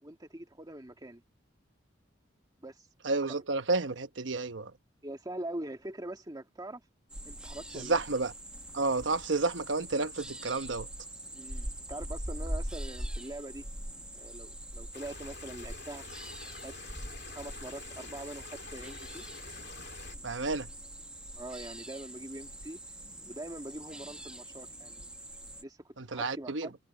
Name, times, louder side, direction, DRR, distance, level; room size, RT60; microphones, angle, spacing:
voice 1, 0.0-1.2 2.6-2.9 5.0-6.8 7.3-8.0 11.3-13.7 14.1-16.1 16.6-16.7 17.3-19.3 21.3-22.8 23.2-25.1 25.6-26.8, right 1 dB, 20° right, 1.9 m, -43 dB
voice 2, 3.0-4.7 7.7-8.3 8.7-10.9 20.2-20.7 26.0-26.7, right 3 dB, 85° right, 1.0 m, -31 dB
sound 1, 7.1-25.6, right 1 dB, 5° right, 1.0 m, -43 dB
sound 2, 14.9-20.2, left 4 dB, 65° left, 2.5 m, -47 dB
head